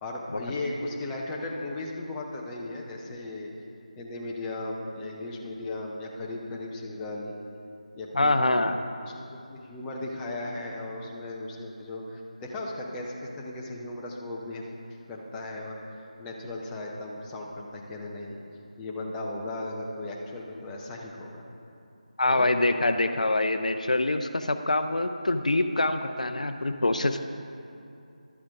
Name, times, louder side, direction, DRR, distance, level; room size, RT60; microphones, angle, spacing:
voice 1, 0.0-3.5 4.0-7.4 8.0-8.7 9.0-14.6 15.1-18.4 18.8-21.4 22.3-22.5, left 2 dB, 10° left, -2 dB, 0.6 m, -36 dB
voice 2, 8.1-8.8 22.2-27.2, left 2 dB, 70° left, 8 dB, 0.5 m, -25 dB
12.0 x 7.3 x 3.5 m, 2.6 s
figure-of-eight pair, 160°, 4 cm